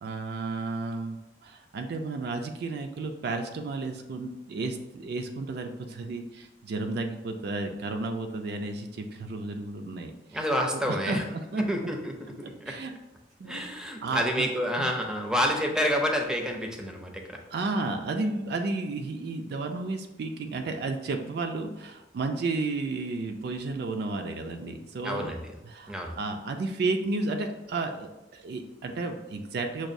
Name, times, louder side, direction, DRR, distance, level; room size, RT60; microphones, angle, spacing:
voice 1, 0.0-10.4 10.7-11.6 12.4-12.9 13.4-13.7 14.0-14.5 14.8-14.9 17.5-25.4 25.6-29.9, right 3 dB, 60° right, 4 dB, 0.3 m, -32 dB
voice 2, 10.3-11.2 11.6-12.3 12.6-12.7 13.5-17.4 25.0-25.5 25.9-26.1, equal, 5° right, 2 dB, 0.5 m, -28 dB
5.9 x 2.3 x 2.6 m, 0.97 s
head